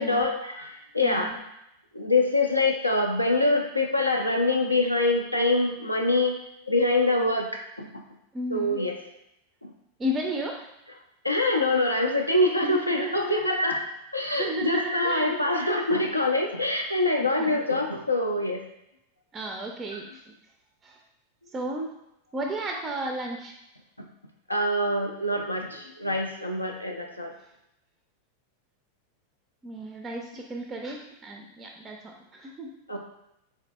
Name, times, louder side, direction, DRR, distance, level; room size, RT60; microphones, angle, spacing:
voice 1, 0.0-1.3 1.9-6.3 6.7-8.0 8.5-8.9 9.6-9.7 11.2-13.9 14.1-18.6 24.0-24.1 24.5-27.3 32.9-33.0, left 2 dB, 85° left, 2 dB, 0.3 m, -25 dB
voice 2, 1.0-1.4 8.3-8.8 10.0-10.7 12.6-13.5 14.4-15.3 17.2-17.6 19.3-20.3 20.8-21.0 21.5-21.9 22.3-23.5 29.6-32.7, right 1 dB, 20° right, 2 dB, 0.4 m, -33 dB
3.5 x 3.2 x 2.2 m, 0.85 s
figure-of-eight pair, 90°, 0 cm